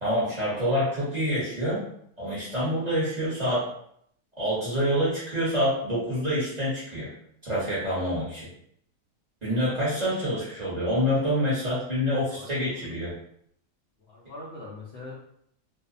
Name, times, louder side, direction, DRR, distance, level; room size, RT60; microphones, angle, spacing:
voice 1, 0.0-1.8 2.2-3.7 4.4-7.1 7.4-8.5 9.4-13.1, equal, 35° right, -9 dB, 0.8 m, -27 dB
voice 2, 14.0-15.1, left 2 dB, 85° left, -5 dB, 0.5 m, -42 dB
2.6 x 2.0 x 2.5 m, 0.70 s
omnidirectional pair, 1.7 m